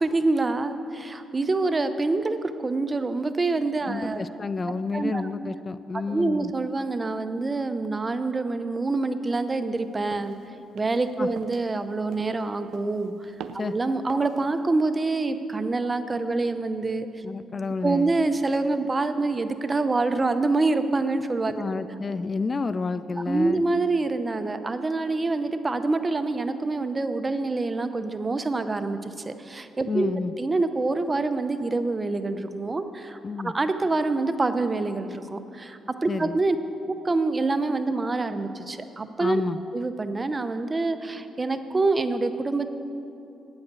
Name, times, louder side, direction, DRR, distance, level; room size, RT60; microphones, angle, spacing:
voice 1, 0.0-4.3 4.9-5.2 6.1-10.4 10.7-17.1 17.8-21.7 23.2-29.0 29.3-30.1 30.4-33.2 33.4-36.6 36.9-39.4 39.7-42.7, right 3 dB, 25° right, 10 dB, 0.7 m, -26 dB
voice 2, 3.9-6.5 11.2-11.3 13.6-13.7 17.2-18.1 21.6-23.6 29.9-30.3 33.2-33.5 36.1-36.4 39.2-39.6, left 4 dB, 35° left, 14 dB, 0.3 m, -29 dB
sound 1, 10.1-10.4 10.8-11.1 11.4-11.7 12.1-12.4 12.7-13.1 13.4-13.7 14.1-14.4, right 8 dB, 80° right, 0.4 m, -43 dB
9.2 x 8.0 x 8.2 m, 2.7 s
cardioid pair, 85°, 0 cm